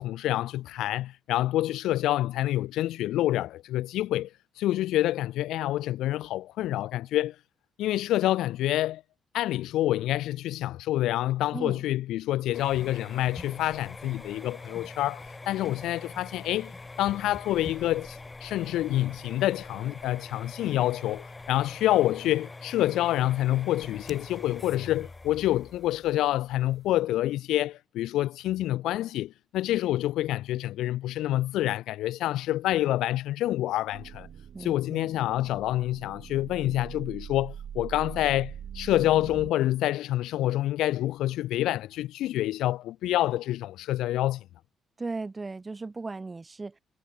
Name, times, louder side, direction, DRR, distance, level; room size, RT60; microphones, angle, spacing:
voice 1, 0.0-7.4 7.8-9.0 9.3-16.7 17.0-34.3 34.6-44.4, left 14 dB, 85° left, 0.4 m, -27 dB
voice 2, 11.5-11.8 34.5-35.1 45.0-46.8, right 3 dB, 25° right, 4.2 m, -36 dB
sound 1, 12.5-27.0, left 3 dB, 20° left, 1.0 m, -44 dB
sound 2, 33.9-39.5, right 9 dB, 60° right, 0.9 m, -42 dB
cardioid pair, 90°, 0 cm